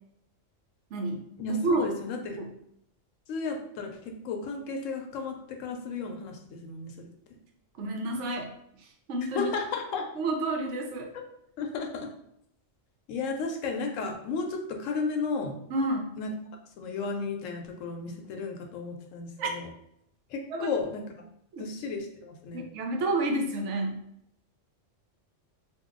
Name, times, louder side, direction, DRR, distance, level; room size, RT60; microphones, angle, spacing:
voice 1, 1.4-2.4 3.3-7.1 9.2-10.1 11.1-11.3 11.6-12.1 13.1-15.6 16.2-16.3 16.8-19.7 20.3-21.2 21.6-22.6, left 4 dB, 85° left, 3 dB, 1.0 m, -33 dB
voice 2, 7.8-8.5 9.1-9.5 10.2-11.1 15.7-16.1 19.4-19.5 20.5-20.7 21.5-21.6 22.5-24.0, right 2 dB, 70° right, 2 dB, 0.9 m, -29 dB
2.7 x 2.2 x 3.7 m, 0.73 s
omnidirectional pair, 1.3 m